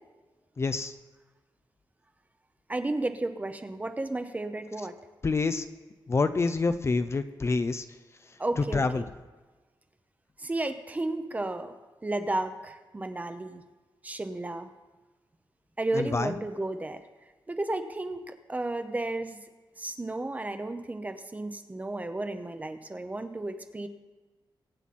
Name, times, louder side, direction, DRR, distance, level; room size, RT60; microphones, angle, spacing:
voice 1, 0.6-0.9 5.2-5.6 6.1-7.8 8.7-9.1 15.9-16.3, left 3 dB, 30° left, 10 dB, 0.5 m, -27 dB
voice 2, 2.7-4.9 8.4-9.1 10.4-11.7 12.0-13.6 14.0-14.7 15.8-17.0 17.5-19.4 19.8-23.9, right 2 dB, 20° right, 9 dB, 0.8 m, -33 dB
23.0 x 9.0 x 4.3 m, 1.3 s
wide cardioid pair, 175°, 9 cm